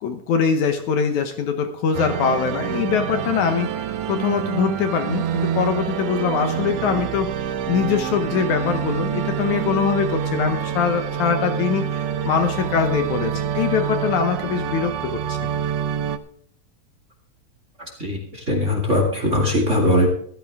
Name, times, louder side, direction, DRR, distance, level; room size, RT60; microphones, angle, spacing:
voice 1, 0.0-3.7 4.1-7.3 7.7-15.5, left 6 dB, 70° left, 7 dB, 2.2 m, -23 dB
sound 1, 1.9-16.2, right 9 dB, 75° right, 1.5 m, -27 dB
voice 2, 18.5-20.1, left 1 dB, 25° right, 0 dB, 2.2 m, -19 dB
15.0 x 13.0 x 3.5 m, 0.62 s
omnidirectional pair, 3.9 m